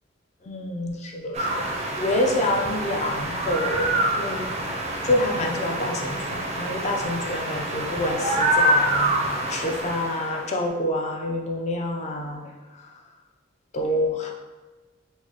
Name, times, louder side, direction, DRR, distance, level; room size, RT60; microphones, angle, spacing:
voice 1, 0.4-4.5 5.0-12.8 13.7-14.3, left 1 dB, 35° left, 2 dB, 0.4 m, -27 dB
sound 1, 1.3-10.5, right 1 dB, 35° right, 0.4 m, -26 dB
4.6 x 2.1 x 2.8 m, 1.2 s
head